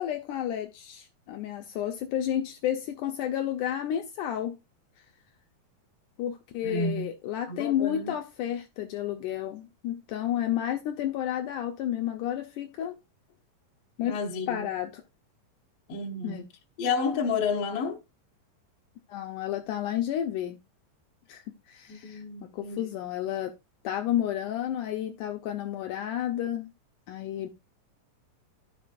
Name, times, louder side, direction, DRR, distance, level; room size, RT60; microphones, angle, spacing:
voice 1, 0.0-4.6 6.2-12.9 14.0-14.2 14.5-15.0 16.2-16.5 19.1-20.6 21.3-21.4 21.7-23.6 23.8-26.7 27.1-27.5, left 11 dB, 80° left, 2.1 m, -31 dB
voice 2, 6.6-7.1 7.5-8.1 14.0-14.7 15.9-16.5 16.8-18.0 21.9-22.9, left 4 dB, 60° left, 1.9 m, -31 dB
13.0 x 5.1 x 2.4 m
omnidirectional pair, 3.9 m